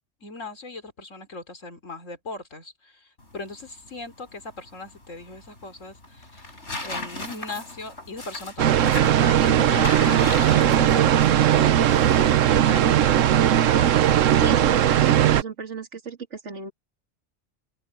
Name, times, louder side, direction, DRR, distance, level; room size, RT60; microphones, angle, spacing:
voice 1, 0.2-6.5 6.8-13.1, left 2 dB, 80° left, 3.5 m, -39 dB
sound 1, 3.2-15.4, left 2 dB, 65° left, 5.3 m, -39 dB
sound 2, 8.6-15.4, right 10 dB, 80° right, 1.1 m, -18 dB
voice 2, 14.4-16.7, right 6 dB, 65° right, 2.6 m, -32 dB
open air
omnidirectional pair, 1.3 m